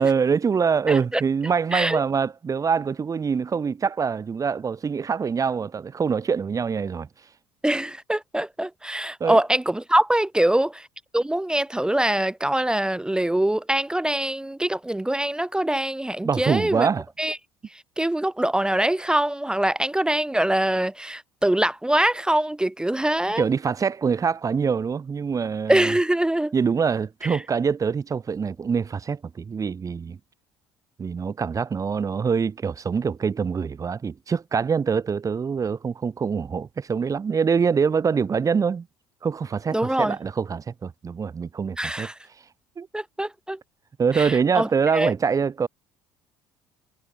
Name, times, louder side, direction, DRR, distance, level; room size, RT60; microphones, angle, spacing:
voice 1, 0.0-7.1 9.2-9.4 16.2-17.0 23.4-25.9 26.5-30.2 31.0-38.9 39.2-42.1 42.8-42.9 44.0-45.7, right 6 dB, 30° right, 1.3 m, -24 dB
voice 2, 0.9-1.2 1.7-2.0 7.6-10.9 11.1-16.9 17.2-17.4 18.0-23.4 25.7-26.5 27.3-27.4 39.7-40.2 41.8-42.2 42.9-43.6 44.1-45.1, right 1 dB, 5° right, 0.4 m, -23 dB
figure-of-eight pair, 55°, 11 cm